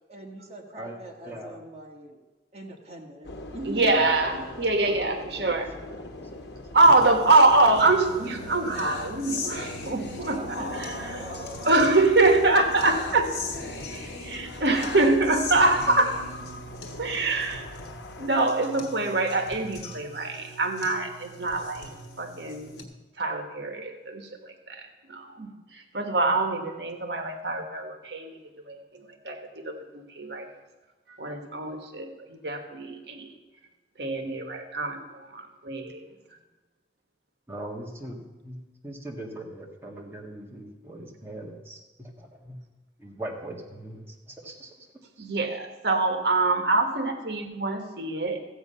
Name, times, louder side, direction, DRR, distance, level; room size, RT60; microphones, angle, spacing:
voice 1, 0.1-2.2 2.5-4.1 10.3-11.7, right 1 dB, 35° right, 0 dB, 1.6 m, -41 dB
voice 2, 1.2-1.6 3.9-7.1 37.5-38.6 38.8-42.6 43.0-44.9, right 1 dB, 15° right, -1 dB, 1.7 m, -41 dB
sound 1, 3.2-18.3, left 1 dB, 85° left, 1.1 m, -43 dB
voice 3, 3.7-5.7 6.7-10.9 11.7-13.3 13.9-16.3 17.0-17.6 18.2-21.9 22.2-22.8 23.2-28.4 28.6-30.6 31.1-33.3 34.0-36.0 45.2-48.4, right 2 dB, 70° right, 5 dB, 1.3 m, -25 dB
sound 2, 6.8-22.8, left 2 dB, 65° left, 1.6 m, -39 dB
14.5 x 8.1 x 5.6 m, 1.2 s
head